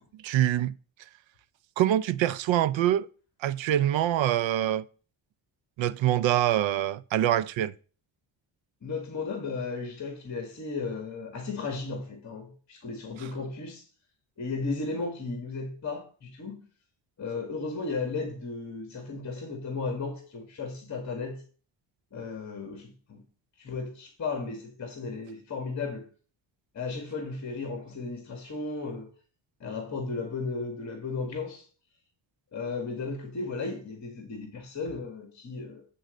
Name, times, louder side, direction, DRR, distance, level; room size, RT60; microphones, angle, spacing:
voice 1, 0.2-0.7 1.8-3.1 3.4-4.8 5.8-7.7, right 12 dB, 80° right, 0.6 m, -25 dB
voice 2, 8.8-13.9 14.4-16.6 17.2-21.4 22.1-23.2 23.6-26.1 26.7-29.1 29.6-31.6 32.5-35.8, left 4 dB, 40° left, 1.8 m, -35 dB
9.2 x 3.9 x 6.4 m
cardioid pair, 145°, 45 cm